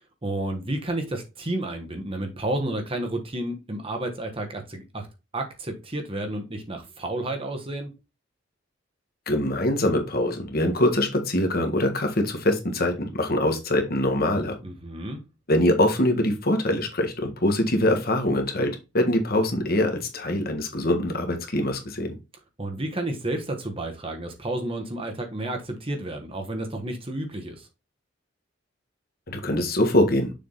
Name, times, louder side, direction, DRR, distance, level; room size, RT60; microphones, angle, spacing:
voice 1, 0.2-5.1 5.3-7.9 14.6-15.2 22.6-27.7, right 1 dB, 30° right, 1.3 m, -31 dB
voice 2, 9.3-14.6 15.5-22.1 29.3-30.3, left 1 dB, 55° left, 1.5 m, -23 dB
6.7 x 3.7 x 3.9 m
head